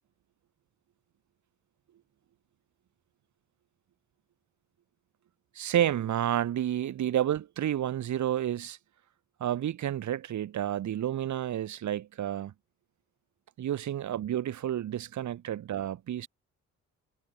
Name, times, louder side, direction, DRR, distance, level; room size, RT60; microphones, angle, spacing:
voice 1, 5.5-8.8 9.4-12.5 13.6-16.3, right 11 dB, 70° right, 6.2 m, -30 dB
cardioid pair, 90°, 30 cm